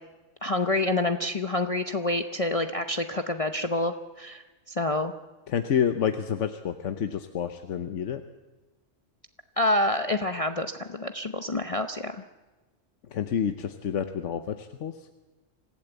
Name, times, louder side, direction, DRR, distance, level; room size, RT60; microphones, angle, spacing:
voice 1, 0.4-4.4 4.7-5.1 9.6-12.2, left 2 dB, 35° left, 6 dB, 0.8 m, -27 dB
voice 2, 5.5-8.2 13.1-14.9, left 8 dB, 75° left, 8 dB, 1.2 m, -28 dB
26.0 x 15.5 x 8.1 m, 1.2 s
omnidirectional pair, 1.3 m